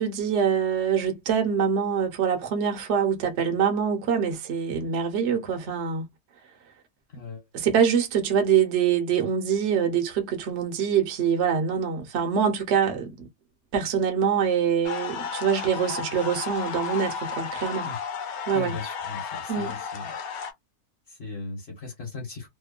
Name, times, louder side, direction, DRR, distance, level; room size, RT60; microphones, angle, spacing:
voice 1, 0.0-6.0 7.5-13.3 13.7-17.9 18.5-18.8 19.5-19.7, right 7 dB, 55° right, 0.9 m, -24 dB
sound 1, 14.8-20.5, left 6 dB, 75° left, 1.1 m, -33 dB
voice 2, 18.5-20.1 21.1-22.5, left 4 dB, 45° left, 1.3 m, -37 dB
2.9 x 2.2 x 2.3 m
omnidirectional pair, 1.6 m